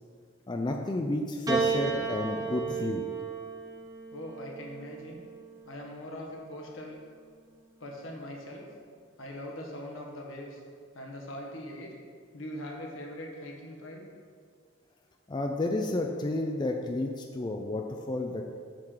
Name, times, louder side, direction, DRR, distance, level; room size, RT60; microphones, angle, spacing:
voice 1, 0.5-3.0 15.3-18.4, left 2 dB, 20° left, 3 dB, 0.3 m, -31 dB
Piano, 1.5-6.0 7.0-7.7, right 5 dB, 20° right, 0.8 m, -34 dB
voice 2, 4.1-5.2 5.7-7.0 7.8-8.7 9.2-10.6 10.9-11.9 12.3-14.1, left 1 dB, 75° left, 0 dB, 1.3 m, -41 dB
7.5 x 3.8 x 6.4 m, 2.1 s
head